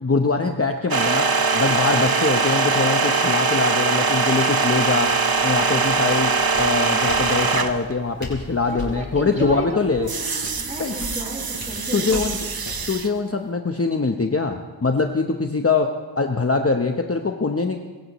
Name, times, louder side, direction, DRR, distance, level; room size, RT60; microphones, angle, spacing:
voice 1, 0.0-1.3 1.5-5.1 5.4-6.3 6.6-10.1 10.8-10.9 11.9-12.4 12.9-15.9 16.2-17.8, left 4 dB, 30° left, 4 dB, 0.9 m, -23 dB
sound 1, 0.9-7.9 10.1-13.1, right 4 dB, 50° right, 1.0 m, -22 dB
Walk footsteps, 4.9-12.9, left 1 dB, 50° left, 6.2 m, -38 dB
voice 2, 8.6-12.4, equal, 15° right, -1 dB, 4.2 m, -33 dB
25.0 x 15.0 x 3.1 m, 1.4 s
wide cardioid pair, 50°, 47 cm